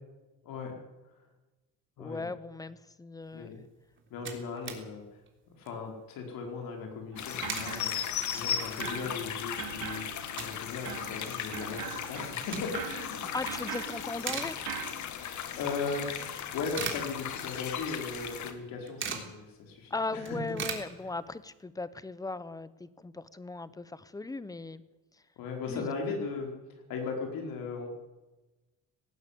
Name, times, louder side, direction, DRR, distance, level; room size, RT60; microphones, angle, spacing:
voice 1, 0.4-0.8 2.0-2.2 3.3-3.6 4.1-5.0 5.6-13.3 15.5-20.5 21.0-21.1 25.4-26.5 26.9-27.9, left 4 dB, 70° left, 2 dB, 4.7 m, -38 dB
voice 2, 2.0-3.5 13.3-14.6 19.9-24.8 25.7-25.8, left 3 dB, 10° left, 16 dB, 0.8 m, -38 dB
sound 1, 3.7-3.8 3.9-4.8 5.2-5.3 5.6-5.9 7.1-7.8 8.3-8.4 8.9-9.0 9.3-10.7 11.0-11.1 12.1-13.0 13.4-13.7 14.0-15.0 15.4-15.5 16.2-17.7 18.0-18.1 18.3-19.4 19.8-19.9 20.1-21.5, right 6 dB, 35° right, 3.5 m, -40 dB
sound 2, 7.1-8.5 8.8-14.9, right 11 dB, 90° right, 2.0 m, -42 dB
sound 3, 7.2-18.5, left 9 dB, 55° left, 2.2 m, -37 dB
18.5 x 17.0 x 8.4 m, 1.1 s
cardioid pair, 155°, 35 cm